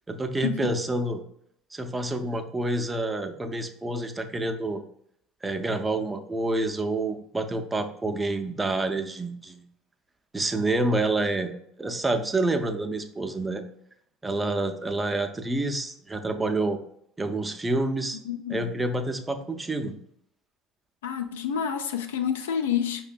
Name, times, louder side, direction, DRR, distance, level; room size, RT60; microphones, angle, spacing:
voice 1, 0.1-1.2 1.7-4.8 5.4-9.6 10.3-11.5 11.8-13.6 14.2-16.8 17.2-18.2 18.5-19.9, right 2 dB, 20° right, 0.4 m, -28 dB
voice 2, 18.2-18.7 21.0-23.0, left 8 dB, 85° left, 0.3 m, -28 dB
5.0 x 2.1 x 2.4 m
hypercardioid pair, 70°, 0 cm